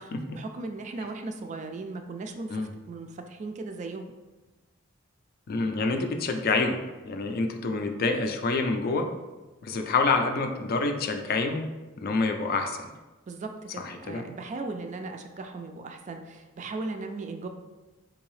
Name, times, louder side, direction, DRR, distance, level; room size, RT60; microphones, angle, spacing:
voice 1, 0.0-4.0 13.3-17.5, right 3 dB, 35° right, 5 dB, 0.3 m, -37 dB
voice 2, 5.5-6.8 7.0-9.1 9.6-11.7 12.0-12.9 13.8-14.2, left 3 dB, 45° left, 5 dB, 0.4 m, -27 dB
3.8 x 2.7 x 3.1 m, 1.2 s
head